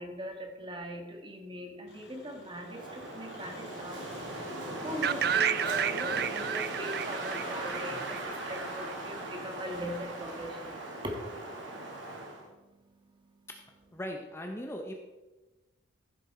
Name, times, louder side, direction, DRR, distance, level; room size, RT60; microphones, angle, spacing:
voice 1, 0.0-4.1 4.5-13.5, equal, 25° right, 3 dB, 1.6 m, -41 dB
Engine, 1.9-10.0, left 1 dB, 55° left, 3.0 m, -52 dB
Wind, 2.6-12.5, right 2 dB, 75° right, 2.3 m, -39 dB
sound 1, 5.0-8.9, right 8 dB, 55° right, 0.5 m, -31 dB
voice 2, 13.9-14.9, equal, 15° left, 2 dB, 0.9 m, -39 dB
14.5 x 7.6 x 4.4 m, 1.1 s
head